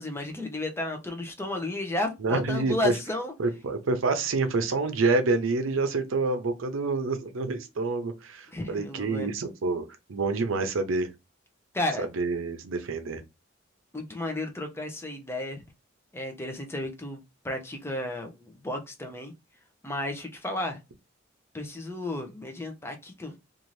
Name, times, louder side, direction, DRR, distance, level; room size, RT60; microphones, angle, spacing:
voice 1, 0.0-3.3 8.5-9.3 11.7-12.1 13.9-15.6 16.1-19.3 19.8-20.8 21.5-23.3, left 1 dB, 10° left, 0.5 m, -33 dB
voice 2, 2.2-2.9 3.4-11.1 12.0-13.2, right 3 dB, 85° right, 0.6 m, -27 dB
2.6 x 2.5 x 3.1 m
head